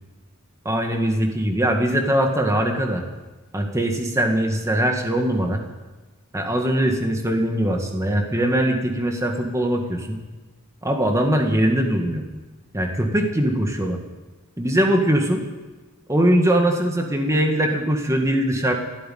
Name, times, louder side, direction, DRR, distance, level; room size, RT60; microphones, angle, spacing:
voice 1, 0.7-3.0 3.5-5.6 6.3-10.2 10.8-12.3 12.7-14.0 14.6-15.4 16.1-18.7, right 1 dB, 15° right, 3 dB, 1.8 m, -21 dB
15.0 x 8.6 x 9.3 m, 1.2 s
head